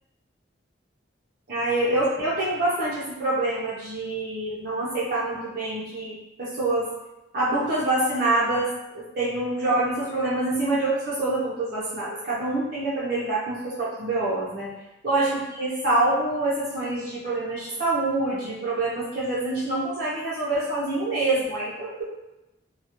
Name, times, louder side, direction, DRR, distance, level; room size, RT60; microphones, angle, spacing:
voice 1, 1.5-6.9 7.3-8.7 8.9-14.7 15.0-22.0, right 2 dB, 55° right, -9 dB, 0.6 m, -26 dB
2.2 x 2.1 x 2.8 m, 0.97 s
head